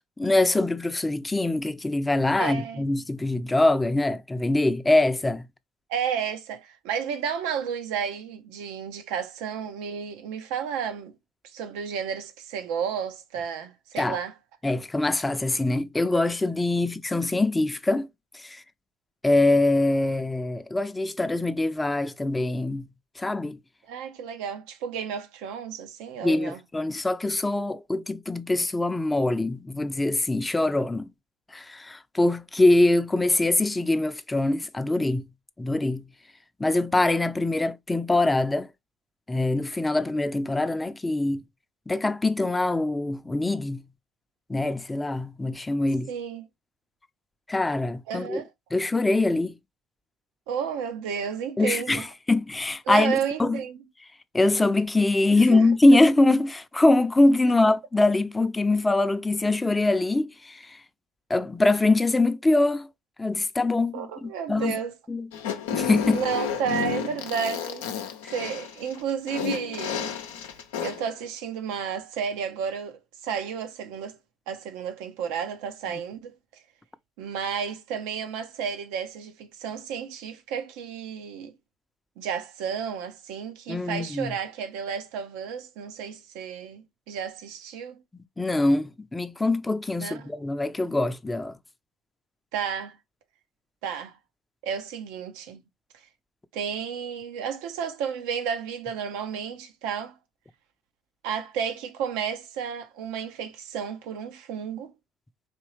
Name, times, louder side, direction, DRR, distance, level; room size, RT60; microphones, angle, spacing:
voice 1, 0.2-5.5 14.0-14.2 14.6-18.1 18.3-18.6 19.2-22.9 23.2-23.6 26.2-31.1 31.5-35.3 35.6-36.1 36.6-38.7 39.3-41.4 41.9-43.9 44.5-46.1 47.5-48.4 48.7-49.5 51.6-53.6 54.3-60.8 61.3-62.9 63.2-64.8 65.1-65.3 65.7-66.2 83.7-84.4 88.1-91.6, left 2 dB, 15° left, 0.6 m, -23 dB
voice 2, 2.4-2.9 5.9-11.1 11.5-14.3 16.8-16.9 23.9-26.6 46.1-46.5 48.1-48.5 50.5-52.0 52.9-53.8 55.5-55.7 63.9-64.9 66.1-67.9 68.3-70.1 70.8-74.2 74.5-76.3 77.2-81.5 82.2-88.0 90.0-90.3 92.5-93.0 93.8-94.2 94.6-95.6 96.5-100.1 101.2-104.9, right 7 dB, 75° right, 0.8 m, -32 dB
Fart, 65.3-71.1, left 8 dB, 80° left, 0.6 m, -31 dB
4.3 x 3.0 x 3.1 m
hypercardioid pair, 65°, 0 cm